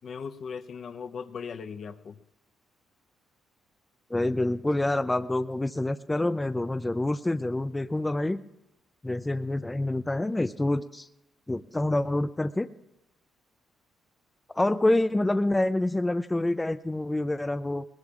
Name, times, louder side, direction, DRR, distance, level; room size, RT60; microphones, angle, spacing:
voice 1, 0.0-2.2, left 6 dB, 55° left, 9 dB, 0.7 m, -38 dB
voice 2, 4.1-8.4 9.0-11.1 11.5-12.7 14.5-17.8, left 1 dB, 15° left, 11 dB, 0.4 m, -27 dB
20.5 x 19.5 x 2.4 m, 0.92 s
cardioid pair, 90°, 0 cm